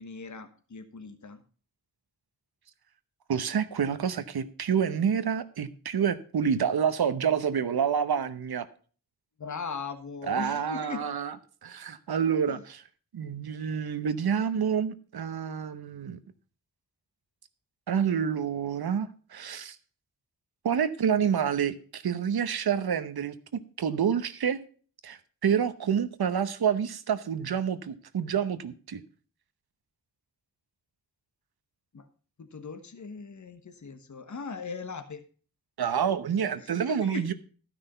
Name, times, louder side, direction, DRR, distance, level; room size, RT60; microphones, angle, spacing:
voice 1, 0.0-1.4 9.4-11.1 12.4-12.6 31.9-32.0 32.4-35.2 36.5-37.3, left 4 dB, 50° left, 8 dB, 1.3 m, -39 dB
voice 2, 3.3-8.7 10.3-11.3 11.6-12.8 13.1-16.2 17.9-19.8 20.6-23.3 23.8-24.6 25.0-29.0 35.8-37.3, right 7 dB, 85° right, 12 dB, 0.9 m, -28 dB
13.0 x 6.0 x 5.5 m, 0.41 s
wide cardioid pair, 75°, 37 cm